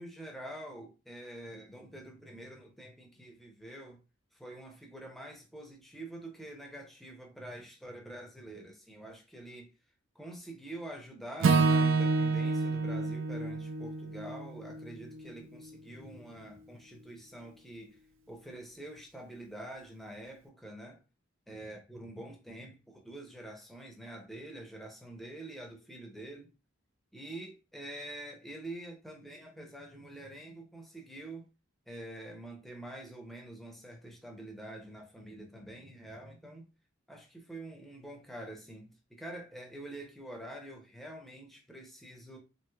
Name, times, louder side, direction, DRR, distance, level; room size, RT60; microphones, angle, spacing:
voice 1, 0.0-4.0 4.3-9.7 10.1-18.0 18.3-21.0 21.5-26.5 27.1-31.5 31.9-36.6 37.1-42.4, right 1 dB, ahead, 0.6 m, -46 dB
Acoustic guitar / Strum, 11.4-15.7, right 4 dB, 80° right, 0.4 m, -29 dB
3.1 x 2.9 x 2.3 m
head